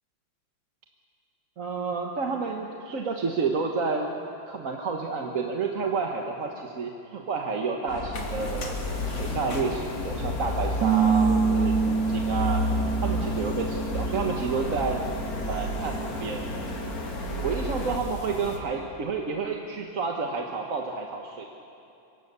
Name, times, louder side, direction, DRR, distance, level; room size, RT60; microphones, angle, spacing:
voice 1, 1.6-4.1 4.5-8.7 9.1-12.6 13.0-15.0 15.4-16.5 17.4-21.5, right 4 dB, 45° right, 1 dB, 1.5 m, -30 dB
sound 1, 7.9-18.0, left 1 dB, 45° left, 2.4 m, -32 dB
sound 2, 8.1-18.6, left 2 dB, 85° left, 3.5 m, -38 dB
Bass guitar, 10.8-17.0, right 6 dB, 60° right, 1.6 m, -28 dB
26.0 x 24.0 x 6.8 m, 2.8 s
omnidirectional pair, 2.3 m